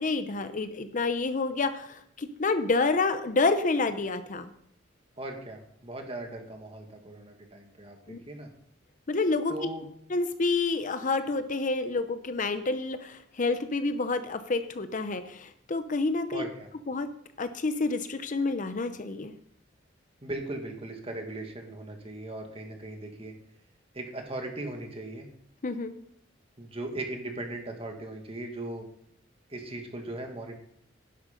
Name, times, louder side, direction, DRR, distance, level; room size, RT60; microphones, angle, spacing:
voice 1, 0.0-4.5 8.1-8.2 9.1-9.5 10.1-16.5 16.9-17.1 17.4-19.3 25.6-25.9, left 3 dB, 45° left, 10 dB, 0.7 m, -28 dB
voice 2, 5.2-8.5 9.5-9.8 16.3-16.7 20.2-23.3 23.9-25.3 26.6-28.9 29.5-30.5, right 2 dB, 30° right, 3 dB, 1.8 m, -38 dB
11.0 x 7.9 x 5.2 m, 0.69 s
head